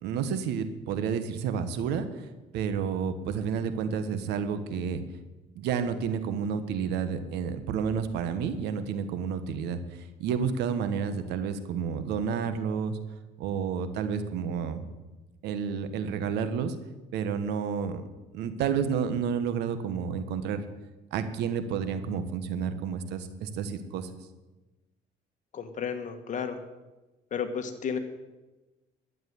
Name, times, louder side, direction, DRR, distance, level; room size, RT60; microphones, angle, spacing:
voice 1, 0.0-2.3 2.5-5.0 5.5-13.0 13.4-14.9 15.4-16.7 17.1-18.1 18.3-20.7 21.1-24.1, right 7 dB, 85° right, 10 dB, 1.3 m, -30 dB
voice 2, 25.5-26.6 27.3-28.0, left 7 dB, 45° left, 8 dB, 1.7 m, -32 dB
12.0 x 7.7 x 9.6 m, 1.1 s
cardioid pair, 110°, 17 cm